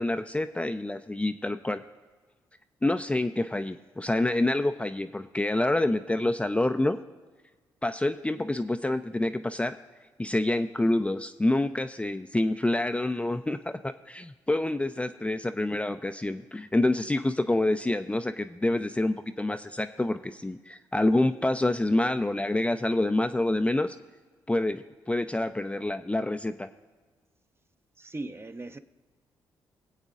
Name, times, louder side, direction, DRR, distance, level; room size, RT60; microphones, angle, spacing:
voice 1, 0.0-1.8 2.8-7.0 7.8-9.8 10.2-24.0 24.5-26.7, left 2 dB, 10° left, 0.4 m, -27 dB
voice 2, 28.0-28.8, right 2 dB, 25° right, 0.6 m, -38 dB
23.0 x 8.0 x 2.4 m
hypercardioid pair, 45°, 9 cm